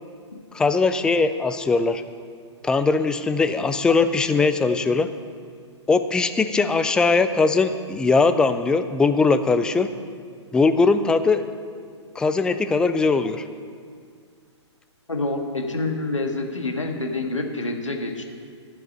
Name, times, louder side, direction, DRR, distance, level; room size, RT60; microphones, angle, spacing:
voice 1, 0.5-2.0 2.6-5.1 5.9-9.9 10.5-11.5 12.2-13.4, left 4 dB, 5° left, 10 dB, 0.3 m, -20 dB
voice 2, 15.1-18.2, left 2 dB, 85° left, 3 dB, 1.7 m, -27 dB
14.0 x 7.7 x 5.4 m, 2.2 s
figure-of-eight pair, 120°, 15 cm